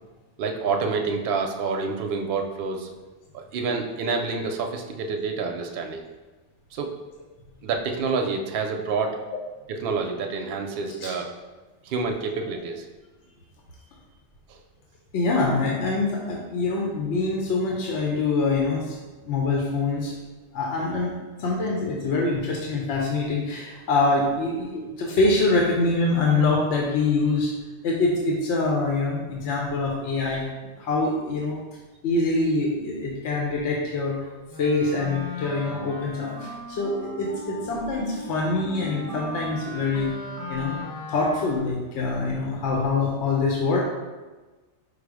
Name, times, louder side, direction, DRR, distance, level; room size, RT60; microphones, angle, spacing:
voice 1, 0.4-2.9 3.3-6.0 6.7-6.9 7.6-9.2 9.7-11.3 11.8-12.9 14.5-14.6, right 4 dB, 65° right, 3 dB, 0.7 m, -28 dB
voice 2, 15.1-19.0 19.2-20.1 20.5-27.5 27.8-30.4 30.8-31.6 32.0-34.3 34.6-40.1 40.5-40.8 41.1-43.8, left 3 dB, 75° left, -2 dB, 0.9 m, -25 dB
Wind instrument woodwind instrument, 34.5-41.7, left 1 dB, 20° left, 0.6 m, -37 dB
4.9 x 2.0 x 4.7 m, 1.2 s
omnidirectional pair, 1.2 m